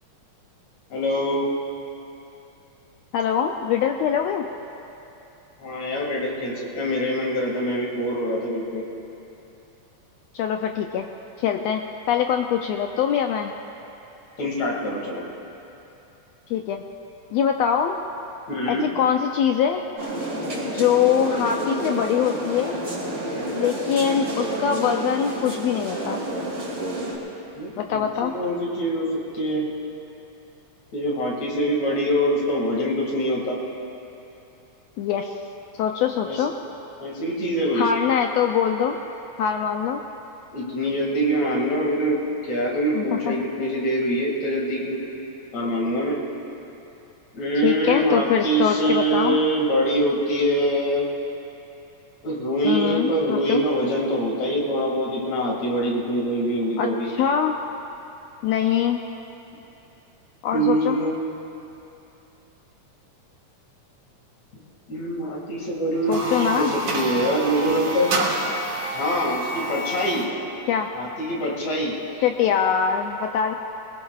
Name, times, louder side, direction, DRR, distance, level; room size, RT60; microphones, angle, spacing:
voice 1, 0.9-1.5 5.6-8.8 14.4-15.2 18.5-18.9 27.5-29.7 30.9-33.6 36.2-36.4 37.0-37.9 40.5-42.2 42.5-45.0 45.5-46.2 47.3-51.1 52.2-57.1 60.5-61.2 64.9-68.2 68.9-70.3 70.9-72.0, equal, 65° left, -3 dB, 3.4 m, -24 dB
voice 2, 3.1-4.4 10.3-11.1 11.4-13.5 16.5-16.8 17.3-18.0 18.7-19.8 20.6-22.8 23.5-26.2 27.8-28.3 35.0-35.4 35.8-36.5 37.7-39.0 39.4-40.0 42.9-43.3 47.6-49.4 52.6-53.6 56.8-57.6 58.4-59.0 60.4-61.0 66.1-66.7 70.7-70.9 72.2-73.5, left 8 dB, 80° left, 4 dB, 1.6 m, -23 dB
sound 1, 20.0-27.2, right 1 dB, 25° right, 2.6 m, -29 dB
sound 2, 65.9-70.4, right 2 dB, 80° right, 3.0 m, -28 dB
21.5 x 20.0 x 2.4 m, 2.9 s
omnidirectional pair, 3.4 m